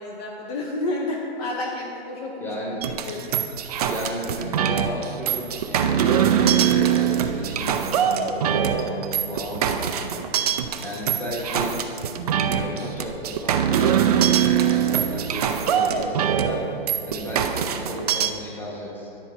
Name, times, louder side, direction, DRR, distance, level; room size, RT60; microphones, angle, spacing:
voice 1, 0.0-2.5 3.0-3.3, left 2 dB, 35° left, 0 dB, 0.8 m, -30 dB
voice 2, 2.4-2.8 3.8-11.8 12.4-19.1, equal, 5° left, -4 dB, 1.1 m, -34 dB
sound 1, 2.8-18.3, right 8 dB, 40° right, 0.4 m, -23 dB
10.5 x 4.4 x 5.4 m, 2.8 s
hypercardioid pair, 140°, 32 cm